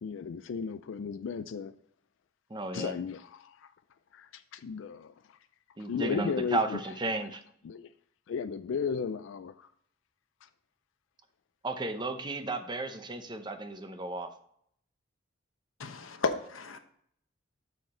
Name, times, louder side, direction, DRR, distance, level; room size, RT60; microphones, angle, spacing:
voice 1, 0.0-1.8 2.7-3.7 4.1-5.4 5.8-6.8 7.6-7.9 8.3-9.7 10.4-10.5, left 6 dB, 65° left, 0.3 m, -35 dB
voice 2, 2.5-3.0 5.8-7.4 11.6-14.3, right 2 dB, 20° right, 0.7 m, -34 dB
voice 3, 15.8-16.8, left 4 dB, 80° left, 0.9 m, -33 dB
6.7 x 6.3 x 4.2 m
head